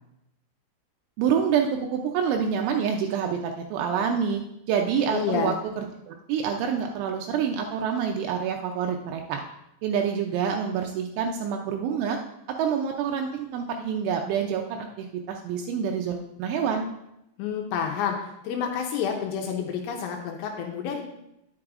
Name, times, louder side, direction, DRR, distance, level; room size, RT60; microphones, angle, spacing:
voice 1, 1.2-9.4 9.8-12.2 12.6-16.9, right 7 dB, 90° right, 3 dB, 2.6 m, -27 dB
voice 2, 5.1-5.5 17.4-21.0, left 7 dB, 85° left, 2 dB, 3.0 m, -29 dB
9.6 x 9.5 x 2.5 m, 0.85 s
omnidirectional pair, 6.0 m